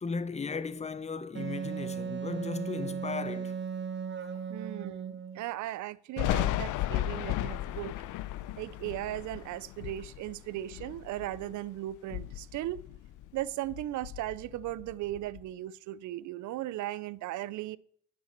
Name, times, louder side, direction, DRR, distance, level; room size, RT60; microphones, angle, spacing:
voice 1, 0.0-3.7 4.3-4.4, left 4 dB, 20° left, 0.7 m, -36 dB
Wind instrument woodwind instrument, 1.3-5.4, right 6 dB, 40° right, 0.8 m, -36 dB
voice 2, 4.5-8.0 8.6-12.8 13.3-17.8, right 14 dB, 75° right, 0.5 m, -37 dB
Thunder, 6.2-11.6 12.0-13.4 13.7-15.4, left 14 dB, 85° left, 0.6 m, -35 dB
9.6 x 7.3 x 4.4 m
cardioid pair, 90°, 30 cm